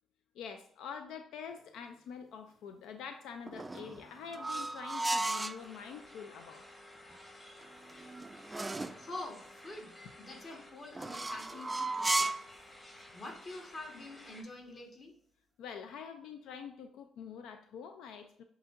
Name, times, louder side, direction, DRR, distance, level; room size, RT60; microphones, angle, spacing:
voice 1, 0.4-6.7 15.6-18.4, left 7 dB, 85° left, 7 dB, 0.3 m, -46 dB
sound 1, 3.5-5.6 7.6-9.0 11.0-12.5, right 2 dB, 15° right, 0.3 m, -35 dB
sound 2, 5.6-14.4, left 1 dB, 20° left, 1.4 m, -54 dB
voice 2, 8.7-12.3 13.1-15.1, left 2 dB, 40° left, 2 dB, 1.3 m, -46 dB
7.7 x 2.7 x 2.4 m, 0.67 s
cardioid pair, 90°, 0 cm